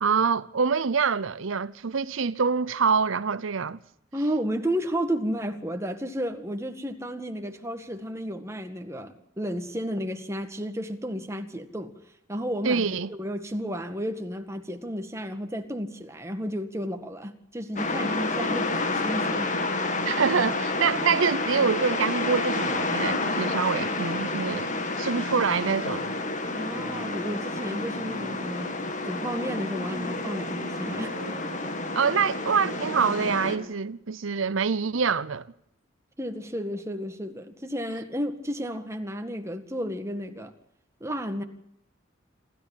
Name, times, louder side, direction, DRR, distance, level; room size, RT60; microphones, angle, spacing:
voice 1, 0.0-3.8 12.6-13.1 20.0-26.1 31.9-35.5, right 5 dB, 80° right, 0.7 m, -25 dB
voice 2, 4.1-11.9 12.3-19.5 26.5-28.8 29.0-31.3 36.2-40.5 41.0-41.4, equal, 15° right, 1.9 m, -32 dB
sound 1, 17.8-33.6, left 2 dB, 40° left, 2.2 m, -29 dB
sound 2, 26.4-33.7, equal, 30° right, 4.7 m, -43 dB
27.0 x 13.5 x 7.4 m
head